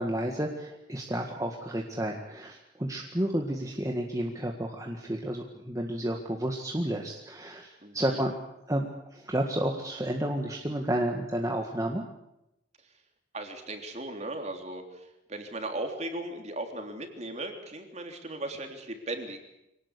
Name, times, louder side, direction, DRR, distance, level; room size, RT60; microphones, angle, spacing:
voice 1, 0.0-8.3 8.7-12.0, right 1 dB, 20° right, 1 dB, 1.8 m, -31 dB
voice 2, 7.8-8.2 13.3-19.4, right 2 dB, 35° right, 4 dB, 3.4 m, -37 dB
25.0 x 18.0 x 8.4 m, 0.87 s
head